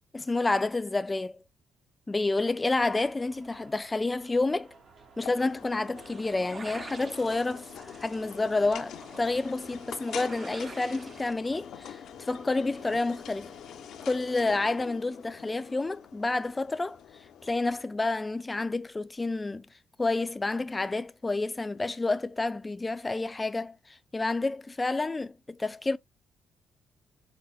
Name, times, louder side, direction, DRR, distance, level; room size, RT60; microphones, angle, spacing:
voice 1, 0.1-1.4 2.1-4.7 5.2-13.5 14.0-17.0 17.4-19.7 20.0-26.0, left 3 dB, 20° left, 0.4 m, -29 dB
sound 1, 2.7-14.7, right 4 dB, 55° right, 1.2 m, -57 dB
sound 2, 5.2-17.8, left 9 dB, 75° left, 0.5 m, -45 dB
sound 3, 6.0-11.3, right 3 dB, 30° right, 0.5 m, -47 dB
5.3 x 2.1 x 2.2 m
cardioid pair, 90°, 0 cm